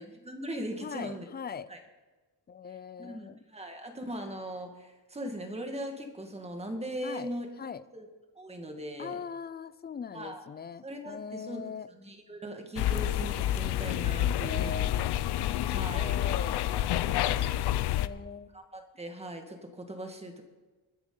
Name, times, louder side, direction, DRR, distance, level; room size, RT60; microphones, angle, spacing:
voice 1, 0.0-1.3 1.7-1.8 3.0-7.5 7.9-8.1 8.3-9.2 10.1-10.4 10.8-14.9 15.7-16.6 17.2-17.5 18.5-20.4, right 1 dB, 15° right, 4 dB, 1.7 m, -40 dB
voice 2, 0.8-1.7 2.5-3.4 7.0-7.3 7.6-7.8 9.0-11.9 14.4-15.1 15.4-16.7 17.9-18.5, left 6 dB, 25° left, 16 dB, 0.4 m, -40 dB
sound 1, 12.8-18.1, left 13 dB, 85° left, 0.6 m, -28 dB
23.5 x 10.0 x 3.9 m, 1.2 s
wide cardioid pair, 155°, 38 cm